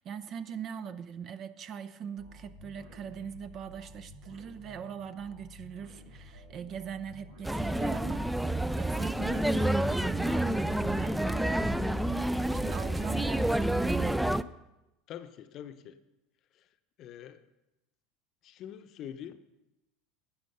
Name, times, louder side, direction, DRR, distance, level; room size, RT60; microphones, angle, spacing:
voice 1, 0.0-12.0 12.5-14.3, right 7 dB, 45° right, 11 dB, 0.8 m, -41 dB
sound 1, 2.2-14.4, equal, 85° right, 2.2 m, -52 dB
sound 2, 7.4-14.4, right 1 dB, 5° right, 0.4 m, -29 dB
voice 2, 15.1-16.0 16.6-16.7 17.0-17.4 18.4-19.4, left 10 dB, 50° left, 11 dB, 0.8 m, -44 dB
11.5 x 8.0 x 5.5 m, 0.95 s
hypercardioid pair, 80°, 0 cm